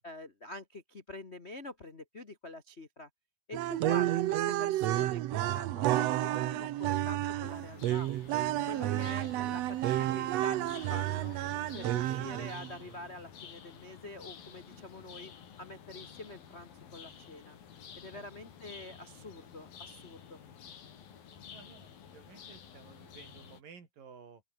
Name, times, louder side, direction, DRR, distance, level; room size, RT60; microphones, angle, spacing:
voice 1, 0.0-3.1 3.5-8.1 8.5-11.4 11.7-15.3 15.6-17.6 18.0-20.4, left 2 dB, 40° left, 0.9 m, -46 dB
sound 1, 3.5-12.8, right 14 dB, 90° right, 1.4 m, -31 dB
sound 2, 7.4-23.6, left 8 dB, 80° left, 4.9 m, -51 dB
voice 2, 21.5-24.4, right 6 dB, 70° right, 5.7 m, -54 dB
open air
omnidirectional pair, 4.1 m